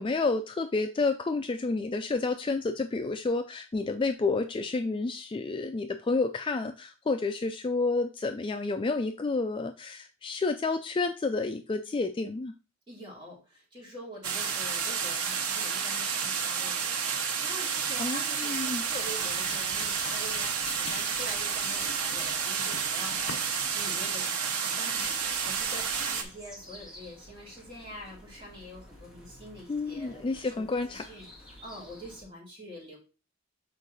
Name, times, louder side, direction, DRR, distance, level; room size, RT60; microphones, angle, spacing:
voice 1, 0.0-12.5 18.0-18.9 29.7-31.0, left 3 dB, 25° left, 7 dB, 0.3 m, -30 dB
voice 2, 12.9-33.0, equal, 25° right, -4 dB, 3.1 m, -45 dB
sound 1, 14.2-26.2, right 6 dB, 85° right, 1.0 m, -30 dB
sound 2, 18.6-24.4, left 6 dB, 60° left, 0.7 m, -45 dB
sound 3, 24.9-32.2, equal, ahead, 1.8 m, -51 dB
6.5 x 4.4 x 4.0 m, 0.33 s
head